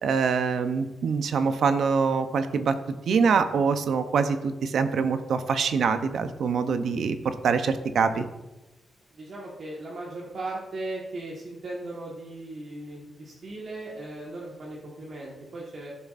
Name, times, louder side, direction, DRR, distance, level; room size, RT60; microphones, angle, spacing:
voice 1, 0.0-2.7 3.1-8.3, right 5 dB, 70° right, 9 dB, 0.6 m, -24 dB
voice 2, 9.1-15.9, right 2 dB, 55° right, -4 dB, 1.4 m, -37 dB
14.0 x 7.0 x 2.5 m, 1.0 s
wide cardioid pair, 160°, 0 cm